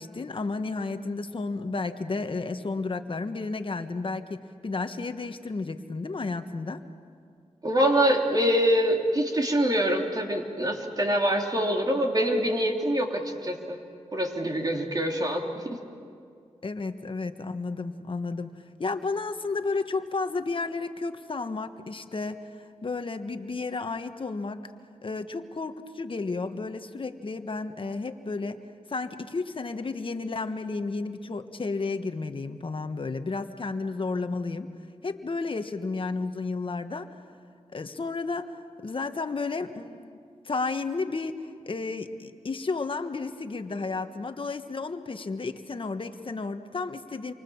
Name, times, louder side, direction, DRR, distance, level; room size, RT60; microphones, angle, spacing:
voice 1, 0.0-6.8 16.6-18.5 18.8-24.7 25.0-28.6 28.9-34.7 35.0-37.1 37.7-40.2 40.4-47.3, left 3 dB, 45° left, 8 dB, 1.4 m, -32 dB
voice 2, 7.6-13.8 14.1-15.6, equal, 35° right, 1 dB, 3.3 m, -25 dB
28.5 x 24.0 x 7.2 m, 2.3 s
cardioid pair, 70°, 12 cm